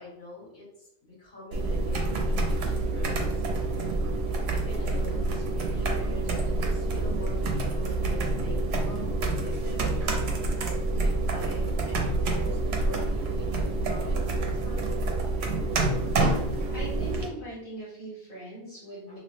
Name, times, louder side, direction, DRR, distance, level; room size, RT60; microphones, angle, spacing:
voice 1, 0.0-3.5 4.5-10.1 10.8-15.0 19.1-19.2, left 1 dB, 55° left, -8 dB, 1.8 m, -45 dB
sound 1, 1.5-17.3, right 2 dB, 75° right, 0.8 m, -27 dB
voice 2, 16.7-19.2, right 2 dB, 40° left, -9 dB, 1.3 m, -40 dB
3.0 x 2.1 x 3.0 m, 0.78 s
omnidirectional pair, 1.1 m